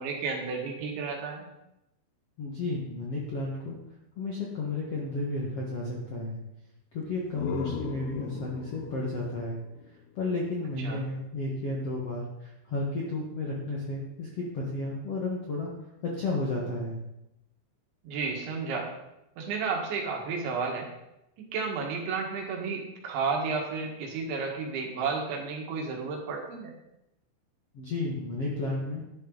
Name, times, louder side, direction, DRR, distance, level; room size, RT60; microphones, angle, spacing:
voice 1, 0.0-1.5 10.8-11.0 18.0-18.9 19.4-20.9 21.5-26.7, right 4 dB, 75° right, 0 dB, 4.2 m, -32 dB
voice 2, 2.4-3.8 4.1-6.4 6.9-9.6 10.1-15.7 16.0-17.0 27.7-29.0, left 2 dB, 60° left, -3 dB, 1.6 m, -32 dB
sound 1, 7.0-10.7, left 8 dB, 90° left, 3.2 m, -39 dB
12.0 x 11.0 x 4.0 m, 0.88 s
omnidirectional pair, 5.3 m